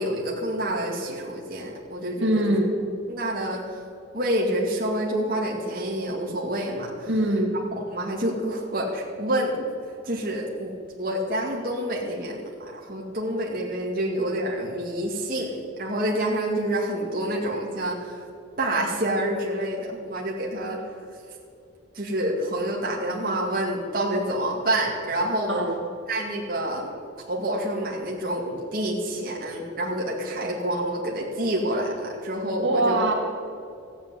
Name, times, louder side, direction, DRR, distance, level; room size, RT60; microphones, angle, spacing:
voice 1, 0.0-2.6 3.1-3.8 4.1-7.1 7.9-9.6 10.0-10.7 11.0-18.2 18.6-20.8 21.9-25.6 26.1-26.9 27.3-33.0, right 1 dB, 45° right, -3 dB, 2.2 m, -28 dB
voice 2, 2.2-2.7 7.1-7.5 25.5-25.8 32.6-33.1, right 1 dB, 65° right, 0 dB, 2.3 m, -22 dB
15.0 x 8.6 x 9.5 m, 2.6 s
head